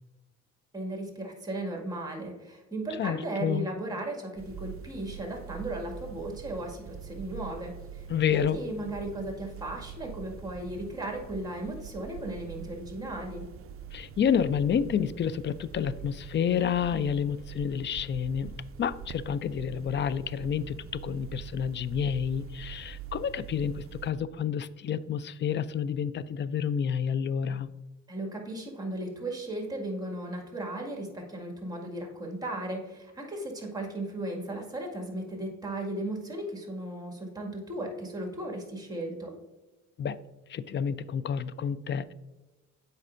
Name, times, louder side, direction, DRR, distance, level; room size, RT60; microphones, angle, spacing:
voice 1, 0.7-13.5 28.1-39.3, right 1 dB, 15° right, 1 dB, 1.9 m, -36 dB
voice 2, 3.0-3.7 8.1-8.6 13.9-18.5 18.8-27.7 40.0-40.2 40.5-42.1, left 8 dB, 40° left, 17 dB, 0.4 m, -29 dB
sound 1, 4.4-24.1, right 8 dB, 50° right, 0.4 m, -44 dB
8.0 x 5.3 x 2.5 m, 1.1 s
cardioid pair, 90°, 30 cm